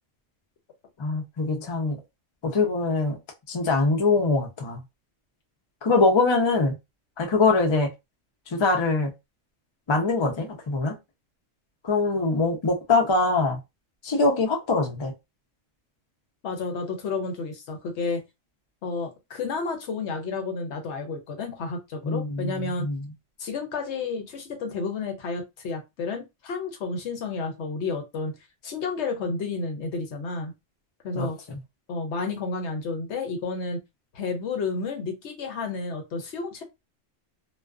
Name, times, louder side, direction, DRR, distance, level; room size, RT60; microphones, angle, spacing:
voice 1, 1.0-2.0 2.4-3.2 3.5-4.8 5.8-6.8 7.2-7.9 8.5-9.1 9.9-10.9 11.8-13.6 14.0-15.1 22.0-23.1 31.1-31.3, left 3 dB, 40° left, 0.4 m, -23 dB
voice 2, 16.4-18.2 18.8-22.8 23.4-28.3 28.6-30.5 31.0-31.4 31.9-33.8 34.1-36.6, left 4 dB, 65° left, 0.9 m, -31 dB
2.4 x 2.2 x 2.3 m
omnidirectional pair, 1.3 m